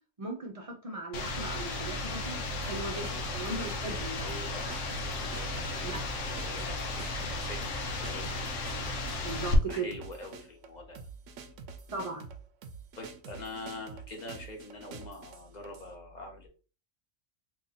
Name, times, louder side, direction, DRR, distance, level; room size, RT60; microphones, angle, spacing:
voice 1, 0.2-4.3 5.8-6.0 9.2-9.9 11.9-12.3, right 3 dB, 35° right, 2 dB, 0.7 m, -38 dB
sound 1, 1.1-9.6, left 2 dB, 80° left, 1.0 m, -35 dB
sound 2, 2.6-15.9, right 6 dB, 85° right, 0.9 m, -47 dB
voice 2, 3.8-8.4 9.7-11.0 12.9-16.5, left 2 dB, 40° left, 2 dB, 1.1 m, -44 dB
2.9 x 2.7 x 4.0 m, 0.37 s
omnidirectional pair, 1.2 m